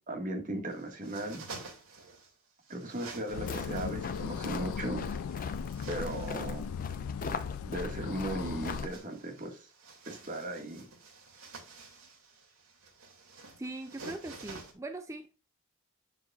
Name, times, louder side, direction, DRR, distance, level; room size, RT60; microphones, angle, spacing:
voice 1, 0.1-1.5 2.7-5.1 5.9-6.9 7.7-9.7 10.1-10.9, right 1 dB, 40° right, 1.8 m, -37 dB
sound 1, 0.6-2.3 2.6-4.3 5.0-6.6 8.2-14.7, right 3 dB, 80° right, 2.4 m, -50 dB
sound 2, 3.3-8.9, left 7 dB, 75° left, 0.3 m, -38 dB
sound 3, 3.3-9.0, left 3 dB, 40° left, 0.7 m, -41 dB
voice 2, 13.6-15.4, right 2 dB, 15° right, 0.4 m, -41 dB
8.2 x 7.3 x 2.4 m
head